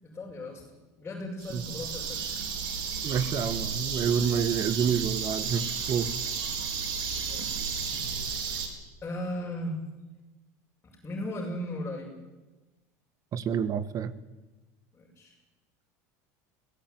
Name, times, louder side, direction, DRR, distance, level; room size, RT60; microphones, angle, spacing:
voice 1, 0.0-2.4 7.3-7.8 9.0-9.8 10.8-12.2 14.9-15.3, left 1 dB, 20° left, -4 dB, 7.2 m, -37 dB
sound 1, 1.4-8.7, right 6 dB, 60° right, 4.7 m, -33 dB
voice 2, 3.0-6.1 13.3-14.1, right 7 dB, 45° right, 14 dB, 1.8 m, -28 dB
22.0 x 17.5 x 9.8 m, 1.1 s
hypercardioid pair, 90°, 9 cm